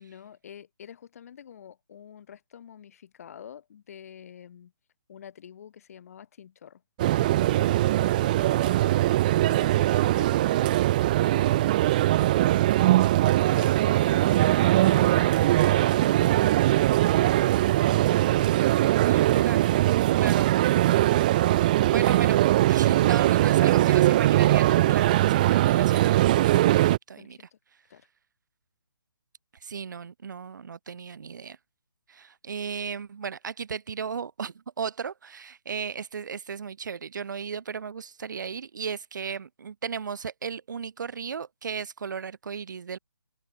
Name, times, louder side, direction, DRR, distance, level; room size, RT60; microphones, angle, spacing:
voice 1, 0.0-4.7 5.1-6.8 7.2-10.8 11.2-15.0 15.7-17.3 27.2-27.6 27.9-28.1, left 8 dB, 40° left, 5.5 m, -48 dB
sound 1, 7.0-27.0, right 15 dB, 25° right, 0.7 m, -21 dB
voice 2, 18.3-18.7 19.0-19.7 20.1-20.5 21.6-27.4 29.6-31.6 32.1-43.0, right 6 dB, 55° right, 3.7 m, -35 dB
open air
hypercardioid pair, 165°, 12 cm